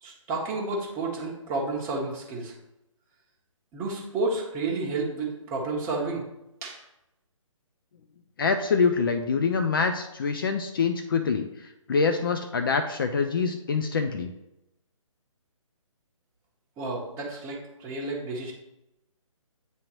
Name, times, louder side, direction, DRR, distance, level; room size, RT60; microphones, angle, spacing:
voice 1, 0.0-2.5 3.7-6.2 6.6-6.8 16.8-18.5, right 3 dB, 15° right, -3 dB, 1.1 m, -31 dB
voice 2, 8.4-14.3, left 5 dB, 40° left, 7 dB, 0.4 m, -25 dB
9.2 x 3.7 x 3.0 m, 0.89 s
figure-of-eight pair, 140°, 17 cm